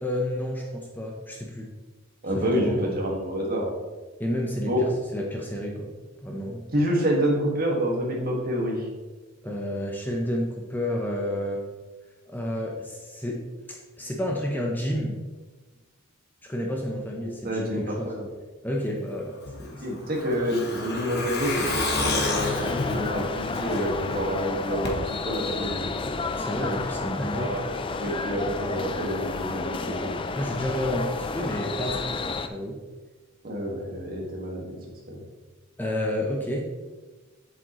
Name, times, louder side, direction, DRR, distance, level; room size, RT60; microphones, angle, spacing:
voice 1, 0.0-1.7 2.3-2.9 4.2-4.8 5.1-5.9 6.2-6.6 9.4-11.6 12.3-13.4 13.7-15.2 16.4-18.1 18.6-19.8 26.3-27.5 30.3-32.2 32.5-32.8 35.8-36.6, equal, 10° left, 0 dB, 0.8 m, -30 dB
voice 2, 2.2-3.7 4.6-4.8 6.7-8.9 17.2-18.3 19.8-26.0 27.3-30.2 33.4-34.6 35.1-35.2, equal, 45° right, -1 dB, 1.8 m, -28 dB
Truck, 19.4-24.1 24.4-24.5 24.8-24.9, left 2 dB, 50° left, 1.3 m, -29 dB
sound 1, 22.3-32.5, left 4 dB, 25° left, 0.3 m, -31 dB
7.6 x 7.5 x 3.1 m, 1.3 s
head